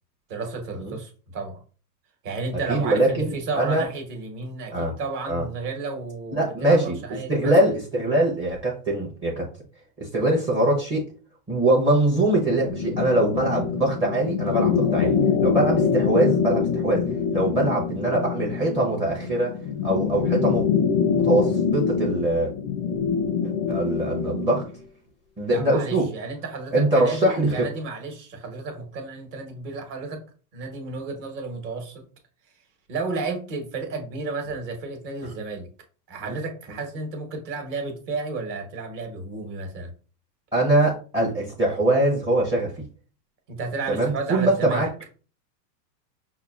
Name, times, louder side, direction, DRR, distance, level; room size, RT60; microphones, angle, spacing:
voice 1, 0.3-1.6 2.2-7.6 25.5-30.2 30.5-32.1 32.9-35.7 36.1-39.9 43.5-44.9, right 3 dB, 40° right, 3 dB, 1.2 m, -32 dB
voice 2, 2.7-3.8 4.7-4.9 5.3-5.4 6.3-7.0 7.3-9.5 10.0-11.0 11.5-17.0 17.3-19.5 19.8-20.7 21.2-22.5 23.7-24.7 25.4-26.1 26.7-27.6 36.2-36.4 40.5-42.8 43.9-44.9, right 1 dB, 10° right, -1 dB, 0.6 m, -22 dB
sound 1, 12.3-24.7, left 6 dB, 40° left, 0.4 m, -25 dB
5.5 x 2.3 x 2.3 m, 0.37 s
supercardioid pair, 135°, 49 cm